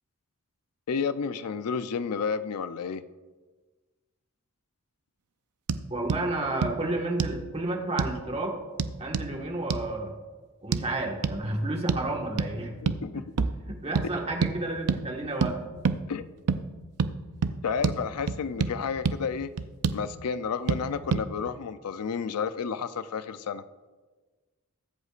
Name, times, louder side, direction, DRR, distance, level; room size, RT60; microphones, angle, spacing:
voice 1, 0.9-3.0 12.8-13.5 16.1-16.3 17.6-19.5 19.9-23.6, left 6 dB, 85° left, 13 dB, 0.5 m, -31 dB
sound 1, 5.7-5.8 6.1-6.2 6.6-6.7 7.2-7.4 8.0-8.2 8.8-9.3 9.7-9.9 10.7-10.9 11.2-11.4 11.9-12.1 12.4-12.5 12.9-13.0 13.4-13.6 14.0-14.1 14.4-14.5 14.9-15.0 15.4-15.5 15.8-16.0 16.5-16.6 17.0-17.1 17.4-17.6 17.8-18.0 18.3-18.7 19.1-19.2 19.6-20.0 20.7-20.8 21.1-21.2, right 5 dB, 85° right, 0.5 m, -26 dB
voice 2, 5.9-8.6 9.0-10.1 10.6-12.8 13.1-13.2 13.7-15.6, right 2 dB, 25° right, 0 dB, 1.5 m, -31 dB
22.0 x 8.0 x 2.5 m, 1.3 s
head